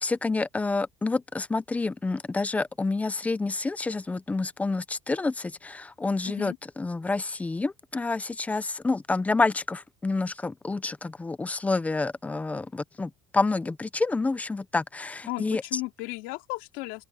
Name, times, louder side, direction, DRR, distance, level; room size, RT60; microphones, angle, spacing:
voice 1, 0.0-15.8, left 3 dB, 5° left, 0.5 m, -28 dB
voice 2, 6.2-6.6 15.3-17.0, left 21 dB, 80° left, 3.2 m, -35 dB
open air
cardioid pair, 170°, 19 cm